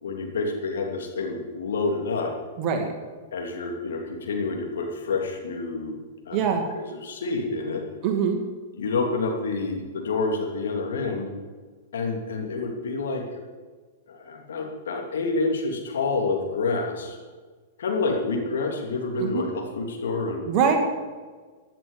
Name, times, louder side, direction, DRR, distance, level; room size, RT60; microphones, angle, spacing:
voice 1, 0.0-2.3 3.3-6.0 6.3-6.4 6.8-7.8 8.7-11.3 11.9-13.2 14.1-17.2 17.8-20.4, left 3 dB, 65° left, 1 dB, 2.7 m, -28 dB
voice 2, 2.6-2.9 6.3-6.7 8.0-8.4 19.2-19.4 20.5-20.8, right 7 dB, 40° right, 3 dB, 2.4 m, -23 dB
15.5 x 10.5 x 5.2 m, 1.4 s
figure-of-eight pair, 105°, 0 cm